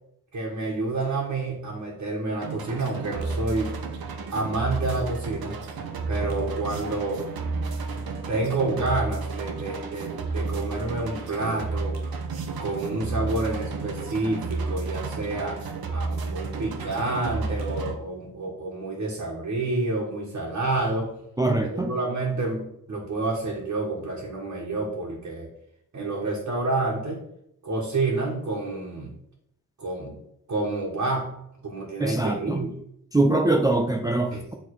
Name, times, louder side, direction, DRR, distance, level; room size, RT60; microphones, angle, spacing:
voice 1, 0.3-3.7 4.3-5.6 6.1-7.2 8.3-12.0 12.6-21.1 21.6-25.5 25.9-27.2 27.6-29.1 29.8-30.2 30.5-32.8 34.3-34.4, right 2 dB, 50° right, -4 dB, 1.7 m, -29 dB
sound 1, 2.4-17.9, right 4 dB, 75° right, 1.0 m, -32 dB
voice 2, 21.4-21.9 32.0-32.7 33.1-34.5, right 2 dB, 10° right, 3 dB, 0.5 m, -23 dB
9.1 x 3.8 x 4.8 m, 0.76 s
wide cardioid pair, 140°, 36 cm